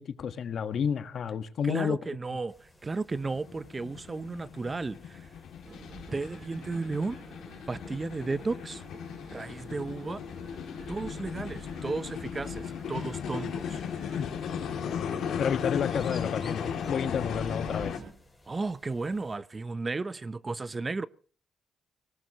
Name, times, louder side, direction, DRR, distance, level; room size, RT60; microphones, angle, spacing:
voice 1, 0.0-2.2 14.2-14.3 15.4-16.6 16.9-17.9, left 7 dB, 60° left, 1.4 m, -30 dB
voice 2, 1.6-5.3 6.1-7.2 7.7-8.8 9.3-10.2 10.9-13.8 18.5-21.1, right 3 dB, 25° right, 0.7 m, -34 dB
sound 1, 2.5-19.4, left 1 dB, 5° left, 5.9 m, -58 dB
sound 2, 3.1-18.0, left 8 dB, 75° left, 2.5 m, -36 dB
sound 3, 5.7-18.1, right 3 dB, 50° right, 3.7 m, -47 dB
25.0 x 18.0 x 3.0 m
cardioid pair, 105°, 0 cm